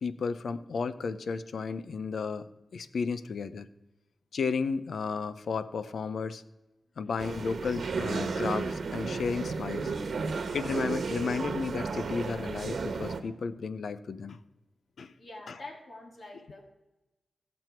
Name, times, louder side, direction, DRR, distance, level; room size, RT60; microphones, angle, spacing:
voice 1, 0.0-3.7 4.3-6.4 7.0-9.9 10.5-14.4 15.0-15.1, left 5 dB, 75° left, 14 dB, 0.6 m, -33 dB
sound 1, 7.2-13.2, right 4 dB, 70° right, 1.2 m, -33 dB
voice 2, 15.2-16.7, left 1 dB, 60° left, 2 dB, 2.9 m, -46 dB
16.5 x 6.2 x 4.5 m, 1.0 s
cardioid pair, 45°, 0 cm